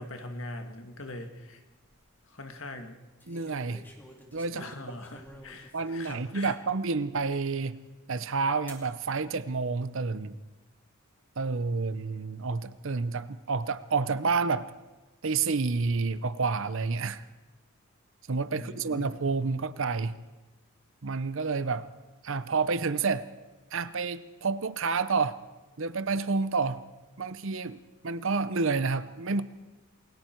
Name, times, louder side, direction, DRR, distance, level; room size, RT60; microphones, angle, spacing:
voice 1, 0.0-1.6 2.3-3.0 4.5-6.6 18.5-19.2, left 2 dB, 60° left, 6 dB, 1.9 m, -42 dB
sound 1, 1.5-1.9 3.2-6.5 7.1-7.2 8.7-8.9 9.8-10.3, equal, 10° left, 2.4 m, -51 dB
voice 2, 3.3-3.8 4.3-4.6 5.7-7.8 8.1-10.4 11.4-14.7 15.2-17.2 18.3-20.2 21.0-21.9 22.2-23.3 23.7-25.4 25.8-26.8 27.2-29.4, right 4 dB, 60° right, 14 dB, 0.7 m, -29 dB
28.0 x 21.0 x 4.6 m, 1.1 s
head